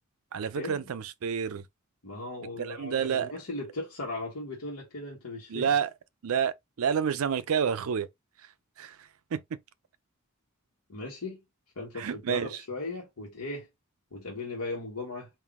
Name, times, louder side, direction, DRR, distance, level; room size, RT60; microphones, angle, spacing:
voice 1, 0.3-1.6 2.6-3.3 5.5-5.9 6.2-8.1 8.8-9.0 9.3-9.4 12.0-12.5, right 7 dB, 70° right, 0.4 m, -29 dB
voice 2, 2.0-5.7 10.9-11.4 11.8-13.7 14.1-15.3, left 2 dB, 80° left, 1.2 m, -37 dB
3.8 x 2.5 x 3.5 m
head